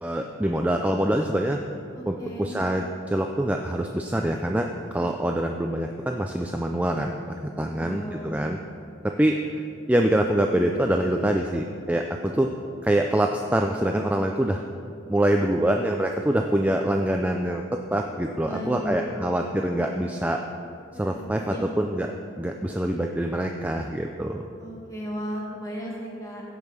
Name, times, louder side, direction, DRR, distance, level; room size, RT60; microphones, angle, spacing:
voice 1, 0.0-1.6 2.1-7.1 7.6-8.6 9.0-12.5 12.8-14.6 15.1-17.6 17.9-20.4 20.9-24.5, right 1 dB, 5° right, 3 dB, 0.3 m, -25 dB
voice 2, 2.0-2.6 7.8-8.3 18.4-19.2 21.1-21.2 21.5-21.7 24.6-26.4, equal, 15° left, -4 dB, 2.3 m, -35 dB
16.0 x 5.4 x 5.9 m, 2.6 s
head